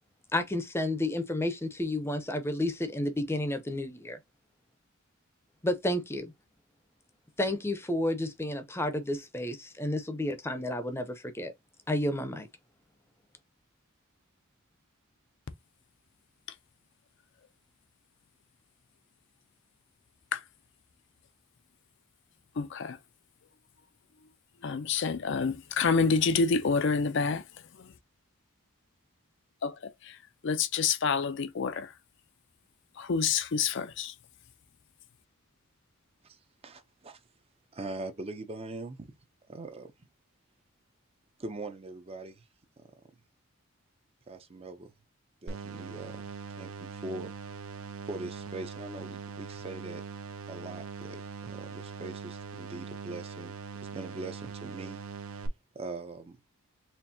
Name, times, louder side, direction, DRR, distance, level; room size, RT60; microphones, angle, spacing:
voice 1, 0.3-4.2 5.6-6.3 7.4-11.5 11.9-12.5, left 1 dB, 10° left, 0.6 m, -31 dB
voice 2, 22.6-23.0 24.6-27.4 27.8-27.9 29.6-29.7 30.4-31.9 33.0-34.1, left 5 dB, 55° left, 0.5 m, -27 dB
voice 3, 36.6-37.2 37.7-39.1 39.5-39.9 41.4-42.4 42.8-42.9 44.3-44.9 45.4-46.2 46.6-47.3 48.1-50.0 50.5-53.5 53.8-55.0 55.3-55.4 55.7-56.4, right 2 dB, 25° right, 0.5 m, -41 dB
sound 1, 45.5-55.5, right 5 dB, 75° right, 0.7 m, -42 dB
4.4 x 3.1 x 2.7 m
head